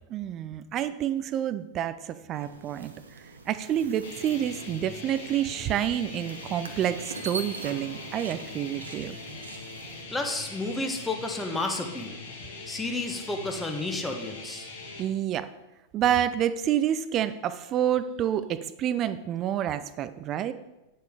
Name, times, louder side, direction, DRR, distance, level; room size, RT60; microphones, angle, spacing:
voice 1, 0.1-2.9 3.5-9.2 15.0-15.5 15.9-20.5, right 10 dB, 35° right, 14 dB, 0.5 m, -28 dB
sound 1, 2.3-10.0, right 3 dB, 75° right, 1.1 m, -43 dB
sound 2, 4.0-15.0, left 3 dB, 65° left, 2.2 m, -42 dB
voice 2, 10.1-12.2 12.7-14.7, left 2 dB, 10° left, 3 dB, 1.3 m, -31 dB
9.5 x 6.8 x 4.8 m, 0.99 s
figure-of-eight pair, 90°, 0 cm